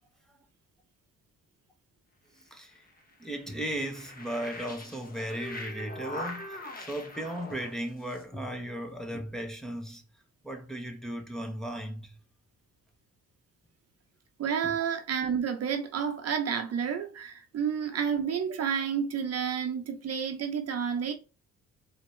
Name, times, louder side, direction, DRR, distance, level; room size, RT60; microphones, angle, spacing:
sound 1, 2.5-8.2, left 2 dB, 30° left, 1.3 m, -42 dB
voice 1, 2.5-2.8 3.2-10.0 10.4-12.1 14.6-14.8, right 1 dB, ahead, 1.0 m, -36 dB
voice 2, 14.4-21.1, right 7 dB, 55° right, 0.8 m, -30 dB
4.2 x 2.8 x 3.2 m
cardioid pair, 90°, 30 cm